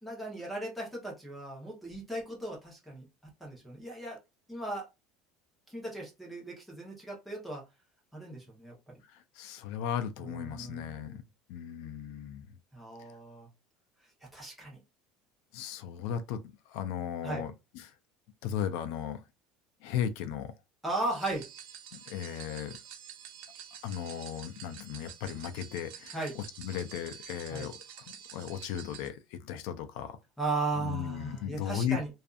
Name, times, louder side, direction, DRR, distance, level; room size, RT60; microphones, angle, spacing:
voice 1, 0.0-3.1 3.4-4.2 4.5-4.9 5.7-7.6 8.1-9.0 10.2-11.2 12.7-13.5 14.3-14.8 17.2-17.4 20.8-21.4 26.1-26.3 27.5-27.7 30.4-32.1, right 2 dB, ahead, 0.9 m, -37 dB
voice 2, 9.1-11.2 11.5-12.5 15.5-16.4 16.7-17.9 18.4-19.2 19.8-20.5 21.9-22.8 23.8-28.1 28.3-30.2 30.8-32.0, left 9 dB, 70° left, 0.4 m, -36 dB
sound 1, 21.1-29.1, right 9 dB, 70° right, 0.5 m, -48 dB
2.5 x 2.4 x 2.4 m
cardioid pair, 170°, 0 cm